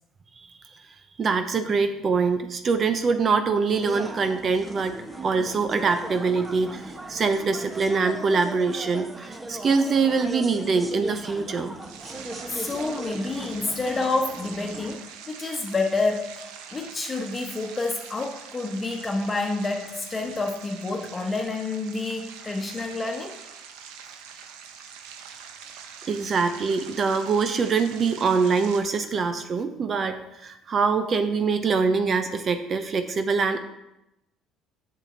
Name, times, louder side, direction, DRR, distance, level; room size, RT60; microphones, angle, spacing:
voice 1, 1.2-5.0 5.2-11.7 26.1-33.6, right 4 dB, 45° right, 8 dB, 0.7 m, -24 dB
sound 1, 3.8-14.9, right 2 dB, 20° right, 1.1 m, -38 dB
sound 2, 11.8-28.8, right 7 dB, 85° right, 0.7 m, -44 dB
voice 2, 12.5-16.3 16.7-23.4, left 3 dB, 25° left, 2 dB, 1.2 m, -28 dB
7.3 x 6.6 x 3.9 m, 0.89 s
supercardioid pair, 80°, 0 cm